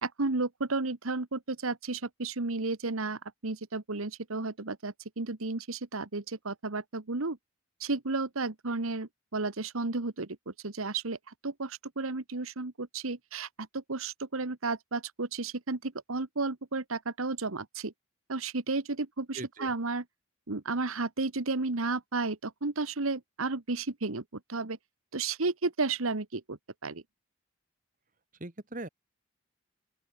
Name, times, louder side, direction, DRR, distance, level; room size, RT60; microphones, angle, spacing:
voice 1, 0.0-7.4 7.8-13.5 13.7-17.9 18.3-20.0 20.5-24.8 25.1-27.0, right 3 dB, 85° right, 1.4 m, -33 dB
voice 2, 19.4-19.7 28.4-28.9, right 2 dB, 40° right, 1.7 m, -40 dB
open air
head